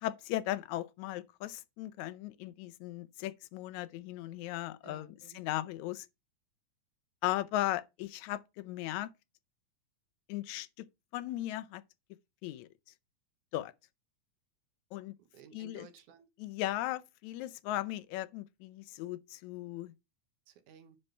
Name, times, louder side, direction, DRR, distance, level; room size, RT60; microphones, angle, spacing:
voice 1, 0.0-6.1 7.2-9.1 10.3-10.9 11.1-11.8 12.4-12.7 13.5-13.7 14.9-15.1 15.5-15.9 16.4-19.9, left 15 dB, 80° left, 1.9 m, -37 dB
voice 2, 4.8-5.4 15.2-16.3 20.5-21.0, right 6 dB, 80° right, 2.6 m, -56 dB
9.8 x 4.2 x 5.5 m
omnidirectional pair, 3.5 m